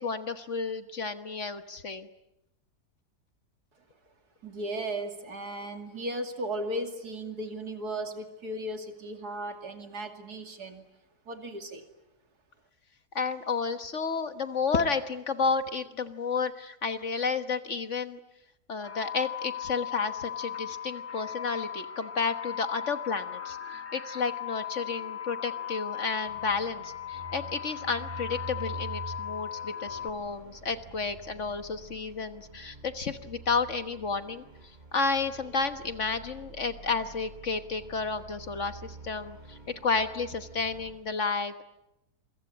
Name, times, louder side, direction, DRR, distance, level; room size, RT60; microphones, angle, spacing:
voice 1, 0.0-2.1 13.2-18.2 18.7-34.4 34.9-41.6, left 4 dB, 50° left, 9 dB, 1.6 m, -31 dB
voice 2, 4.4-10.8 11.3-11.8, right 1 dB, 70° right, 5 dB, 3.1 m, -36 dB
sound 1, 18.8-30.1, left 10 dB, 10° left, 1.4 m, -38 dB
sound 2, 26.2-40.9, right 3 dB, 25° right, 4.5 m, -47 dB
28.0 x 24.0 x 8.6 m, 0.86 s
omnidirectional pair, 1.7 m